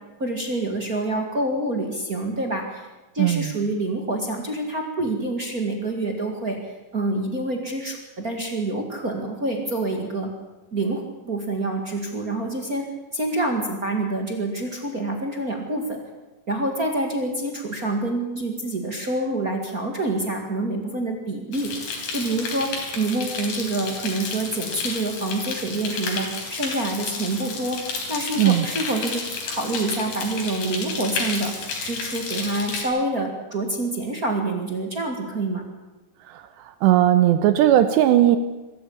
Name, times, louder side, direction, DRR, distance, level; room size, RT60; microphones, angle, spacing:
voice 1, 0.2-2.9 3.1-6.6 6.9-10.3 10.7-12.9 13.1-16.0 16.5-31.5 31.8-35.6, right 2 dB, 55° right, 2 dB, 1.0 m, -27 dB
voice 2, 3.2-3.5 28.4-28.7 36.3-36.4 36.8-38.4, right 12 dB, 75° right, 10 dB, 2.9 m, -17 dB
sound 1, 21.5-32.8, left 4 dB, 75° left, 6.2 m, -31 dB
24.0 x 14.0 x 8.6 m, 1.1 s
omnidirectional pair, 5.5 m